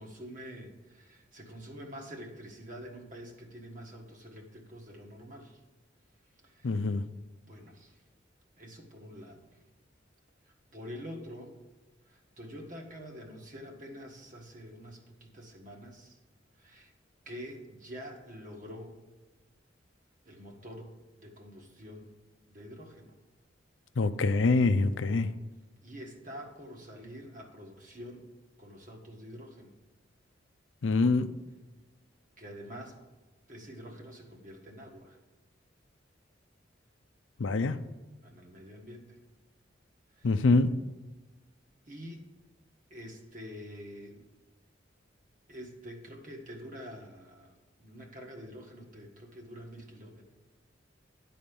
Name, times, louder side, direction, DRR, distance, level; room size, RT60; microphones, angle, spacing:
voice 1, 0.0-5.6 6.4-6.8 7.4-8.0 8.6-9.6 10.7-11.6 12.0-16.2 16.6-16.9 17.2-19.0 20.2-22.1 22.5-23.1 25.8-28.3 28.6-29.7 32.4-33.0 33.5-35.2 38.2-39.2 40.2-40.5 41.9-42.3 42.9-44.2 45.5-50.2, equal, 45° right, 1 dB, 1.5 m, -46 dB
voice 2, 6.6-7.0 24.0-25.3 30.8-31.3 37.4-37.8 40.2-40.7, left 3 dB, 85° left, 11 dB, 0.5 m, -25 dB
10.5 x 4.2 x 7.0 m, 1.2 s
head